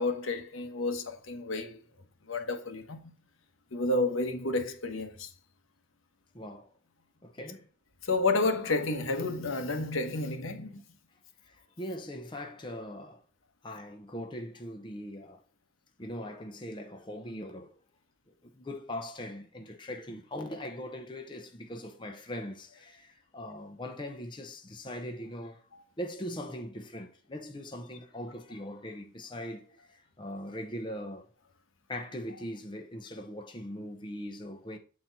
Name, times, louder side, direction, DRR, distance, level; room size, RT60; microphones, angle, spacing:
voice 1, 0.0-1.8 2.3-3.1 3.7-5.3 8.0-10.8, left 2 dB, 80° left, 1.2 m, -30 dB
voice 2, 6.3-6.7 7.2-7.7 11.4-13.2 13.6-15.4 16.0-17.7 18.3-25.6 26.0-31.3 31.9-34.8, equal, 25° left, 0.7 m, -41 dB
7.6 x 4.3 x 4.0 m
head